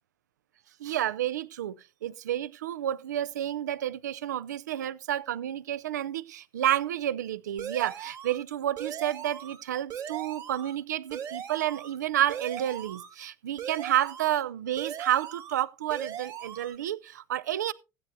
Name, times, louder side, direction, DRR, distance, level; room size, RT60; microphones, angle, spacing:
voice 1, 0.8-1.8 2.0-17.7, right 12 dB, 75° right, 0.5 m, -30 dB
sound 1, 7.6-8.4 8.8-9.6 9.9-10.8 11.1-12.0 12.3-13.1 13.6-14.4 14.8-15.6 15.9-16.8, right 9 dB, 45° right, 2.6 m, -39 dB
16.0 x 9.2 x 2.6 m
figure-of-eight pair, 65°, 10 cm